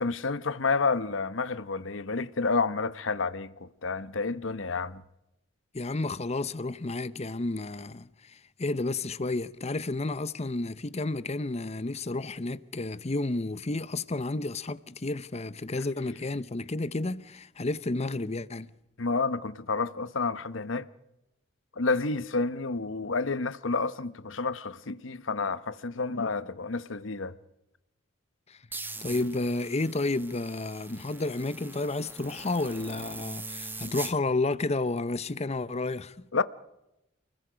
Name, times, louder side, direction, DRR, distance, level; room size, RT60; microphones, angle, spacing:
voice 1, 0.0-5.0 19.0-20.9 21.8-27.3 36.3-36.4, left 4 dB, 75° left, 1.0 m, -30 dB
voice 2, 5.7-18.7 28.5-28.6 29.0-36.2, left 2 dB, 35° left, 0.8 m, -31 dB
sound 1, 28.7-34.1, right 3 dB, 10° right, 1.2 m, -42 dB
29.0 x 21.5 x 5.1 m
head